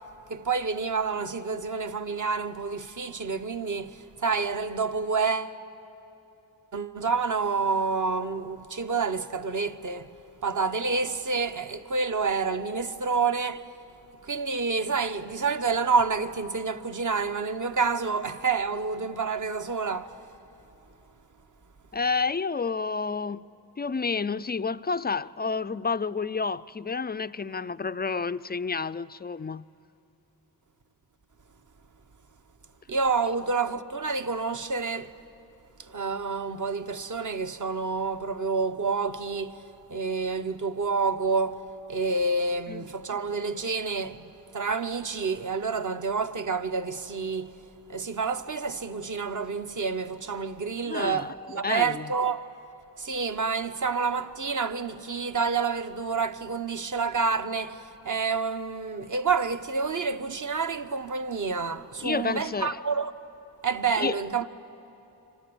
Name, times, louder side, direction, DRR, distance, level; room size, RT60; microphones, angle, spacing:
voice 1, 0.3-5.6 6.7-10.1 10.4-13.6 14.2-20.1 32.9-35.1 35.8-39.6 39.9-41.6 41.9-47.5 47.9-52.4 53.0-63.1 63.6-64.5, right 4 dB, 40° right, 1.2 m, -28 dB
voice 2, 21.9-23.4 23.8-29.7 42.7-42.8 50.8-51.3 51.6-52.1 62.0-62.8 64.0-64.2, left 4 dB, 20° left, 0.5 m, -30 dB
27.5 x 25.0 x 7.1 m
supercardioid pair, 45°, 45 cm